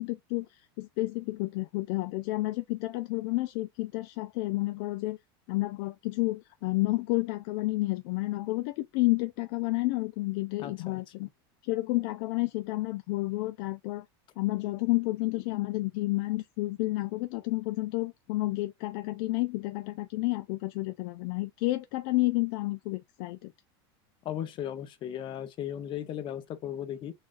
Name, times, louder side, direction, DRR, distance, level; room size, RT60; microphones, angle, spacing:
voice 1, 0.0-5.2 5.5-11.3 11.6-14.0 14.4-23.5, left 20 dB, 60° left, 0.4 m, -30 dB
voice 2, 10.6-11.0 24.2-27.1, left 10 dB, 40° left, 0.9 m, -36 dB
6.3 x 2.5 x 2.5 m
supercardioid pair, 125°, 13 cm